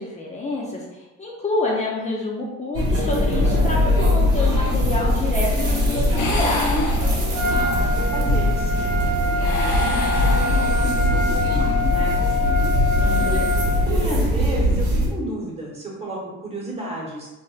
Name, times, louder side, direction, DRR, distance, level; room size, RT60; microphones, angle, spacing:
voice 1, 0.0-6.8 12.9-13.5, left 2 dB, 25° left, -3 dB, 0.5 m, -28 dB
sound 1, 2.7-15.1, left 1 dB, 55° right, 1.0 m, -21 dB
sound 2, 6.2-7.6 9.3-11.1, left 3 dB, 80° left, 0.7 m, -29 dB
voice 2, 7.3-12.5 13.3-13.5 13.9-17.3, right 1 dB, 20° right, -4 dB, 1.0 m, -32 dB
Trumpet, 7.3-13.9, left 2 dB, 75° right, 0.7 m, -25 dB
4.2 x 2.1 x 2.4 m, 1.0 s
cardioid pair, 120°, 29 cm